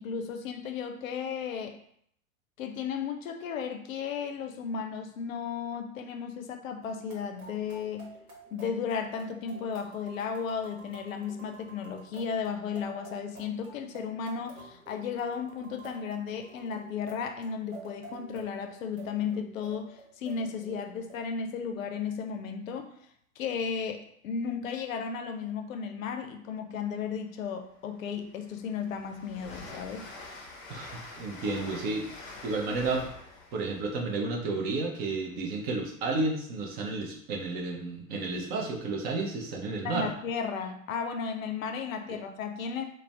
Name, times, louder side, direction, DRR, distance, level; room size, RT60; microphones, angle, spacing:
voice 1, 0.0-1.8 2.6-8.1 8.5-22.9 23.4-30.1 39.8-42.9, left 6 dB, 70° left, 6 dB, 0.5 m, -34 dB
sound 1, 6.8-21.2, right 2 dB, 75° right, 0.9 m, -50 dB
Train, 27.3-27.4 27.8-35.6, left 3 dB, 30° left, 0.6 m, -47 dB
voice 2, 31.2-32.1 32.4-33.1 33.5-40.1, right 3 dB, 25° right, 0 dB, 0.4 m, -31 dB
2.4 x 2.1 x 3.2 m, 0.68 s
figure-of-eight pair, 90°, 42 cm